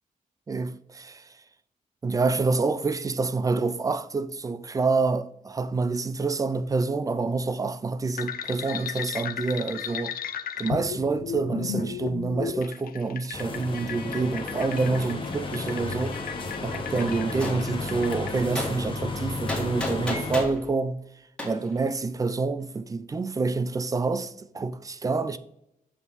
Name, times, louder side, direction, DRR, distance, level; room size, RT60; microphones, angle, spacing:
voice 1, 0.5-1.3 2.0-10.2 10.6-16.2 16.6-21.0 21.4-25.4, right 3 dB, 25° right, 0.4 m, -27 dB
sound 1, 8.2-18.4, left 8 dB, 75° left, 0.6 m, -35 dB
sound 2, 13.3-20.4, left 3 dB, 35° left, 1.1 m, -33 dB
Gunshot gunfire, 17.4-17.6 18.6-18.7 19.5-20.6 21.4-21.5, left 2 dB, 5° left, 2.1 m, -31 dB
7.2 x 5.5 x 4.0 m
wide cardioid pair, 150°, 15 cm